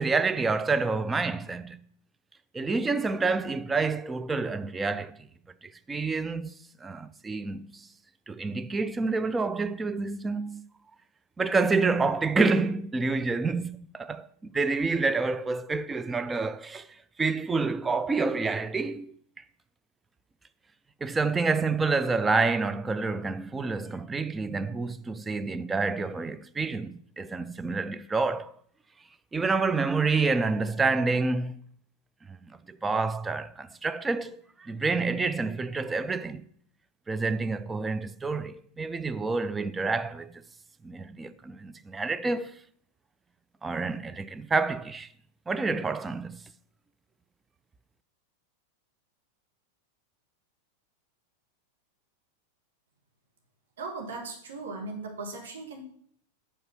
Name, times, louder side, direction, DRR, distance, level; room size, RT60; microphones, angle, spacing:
voice 1, 0.0-1.8 2.5-5.2 5.6-6.5 6.8-7.9 8.3-10.6 11.4-16.9 17.2-19.4 21.0-28.5 29.3-31.6 32.3-36.5 37.1-40.4 40.8-42.6 43.6-45.1 45.5-46.4, right 4 dB, 15° right, 0.3 m, -28 dB
voice 2, 53.8-55.8, right 3 dB, 65° right, 1.6 m, -38 dB
5.3 x 4.8 x 5.9 m
figure-of-eight pair, 90°, 0 cm